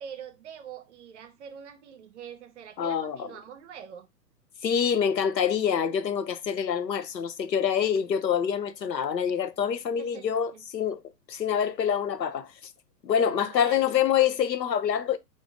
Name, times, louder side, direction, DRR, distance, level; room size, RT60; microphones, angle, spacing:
voice 1, 0.0-4.1 10.0-10.6 13.2-13.9, right 8 dB, 45° right, 0.8 m, -44 dB
voice 2, 2.8-3.3 4.6-11.0 11.3-12.5 13.0-15.2, left 8 dB, 90° left, 0.7 m, -26 dB
5.1 x 2.6 x 3.5 m
hypercardioid pair, 130°, 49 cm